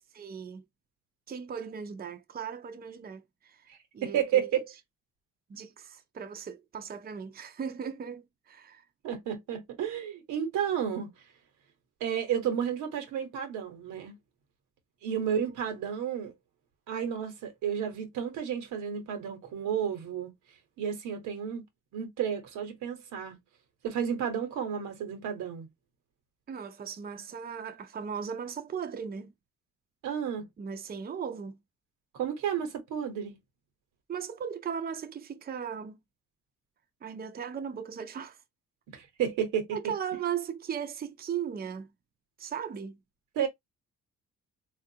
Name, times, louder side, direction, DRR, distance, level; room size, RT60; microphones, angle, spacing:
voice 1, 0.1-0.6 1.3-3.7 3.9-4.5 5.5-8.8 15.1-15.5 26.5-29.3 30.6-31.6 34.1-36.0 37.0-38.4 39.7-41.9 42.4-43.0, right 7 dB, 30° right, 0.6 m, -37 dB
voice 2, 3.7-4.7 9.0-11.1 12.0-14.2 15.0-16.3 16.9-20.3 20.8-21.6 21.9-23.3 23.8-25.7 30.0-30.5 32.1-33.4 38.9-39.7 43.3-43.5, right 8 dB, 90° right, 1.1 m, -32 dB
3.5 x 2.4 x 2.7 m
cardioid pair, 90°, 30 cm